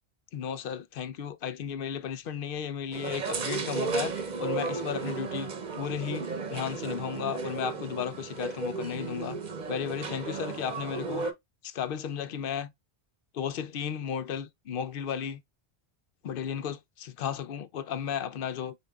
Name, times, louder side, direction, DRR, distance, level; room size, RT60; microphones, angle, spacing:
voice 1, 0.3-5.5 5.8-9.4 9.7-11.3 11.6-12.7 13.3-15.4 16.2-18.8, left 8 dB, 65° left, 0.7 m, -34 dB
sound 1, 2.9-11.3, right 4 dB, 45° right, 0.9 m, -34 dB
6.8 x 2.7 x 2.3 m
omnidirectional pair, 1.1 m